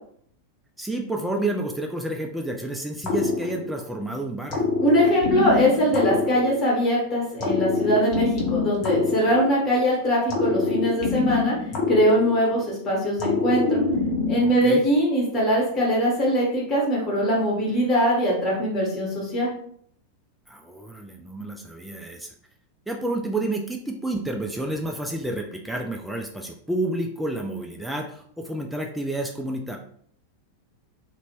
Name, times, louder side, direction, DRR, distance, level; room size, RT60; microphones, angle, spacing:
voice 1, 0.8-4.7 14.4-14.8 20.5-22.3 22.9-29.8, right 2 dB, 5° right, 2 dB, 0.3 m, -30 dB
sound 1, 3.0-4.0 4.5-6.9 7.4-9.8 10.3-12.7 13.2-14.7, left 4 dB, 35° left, 0.8 m, -25 dB
voice 2, 4.8-11.6 11.9-13.8 14.3-19.5, equal, 20° left, -4 dB, 1.2 m, -22 dB
2.6 x 2.1 x 2.9 m, 0.62 s
figure-of-eight pair, 90°, 0 cm